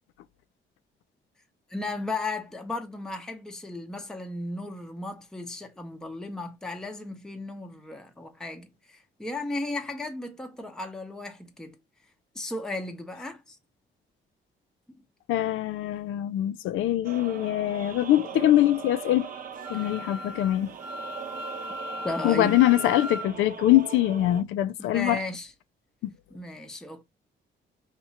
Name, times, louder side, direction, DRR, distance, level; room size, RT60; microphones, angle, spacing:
voice 1, 1.7-11.8 12.3-13.6 19.7-19.9 22.0-22.6 24.8-25.5 26.3-27.0, left 2 dB, 5° left, 0.6 m, -35 dB
voice 2, 15.3-19.3 19.7-20.7 22.2-25.2 26.0-26.1, left 14 dB, 85° left, 0.4 m, -23 dB
sound 1, 17.0-24.4, right 6 dB, 45° right, 0.7 m, -40 dB
Wind instrument woodwind instrument, 19.5-23.3, left 1 dB, 65° right, 1.0 m, -38 dB
2.9 x 2.3 x 4.0 m
cardioid pair, 90°, 20 cm